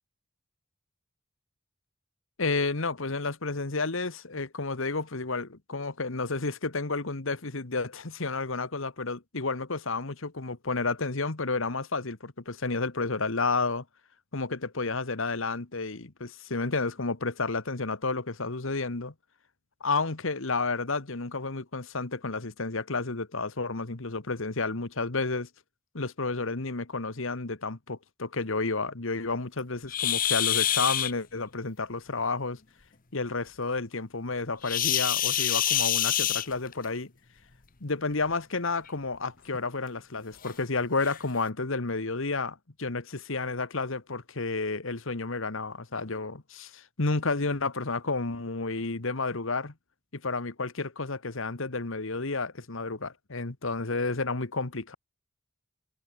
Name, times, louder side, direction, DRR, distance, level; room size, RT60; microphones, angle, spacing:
voice 1, 2.4-13.8 14.3-19.1 19.8-25.5 25.9-32.6 33.1-37.1 37.8-49.7 50.1-54.9, left 3 dB, 65° left, 1.6 m, -31 dB
sound 1, 29.9-31.1 34.6-36.9 38.1-38.3 38.9-39.0 39.5-39.6 40.4-40.5 41.0-41.2, left 11 dB, 45° left, 1.1 m, -26 dB
head